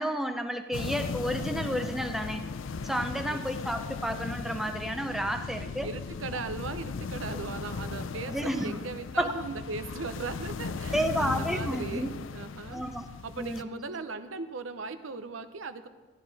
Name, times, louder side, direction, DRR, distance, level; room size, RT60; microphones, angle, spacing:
voice 1, 0.0-2.4 2.8-5.9 8.3-8.8 9.2-9.3 10.9-12.1 12.7-13.1 13.4-13.6, equal, ahead, 6 dB, 0.5 m, -31 dB
sound 1, 0.7-13.6, left 4 dB, 80° left, 0.5 m, -37 dB
voice 2, 5.2-12.9 13.2-15.9, right 4 dB, 85° right, 10 dB, 0.7 m, -38 dB
14.0 x 11.5 x 4.1 m, 1.3 s
head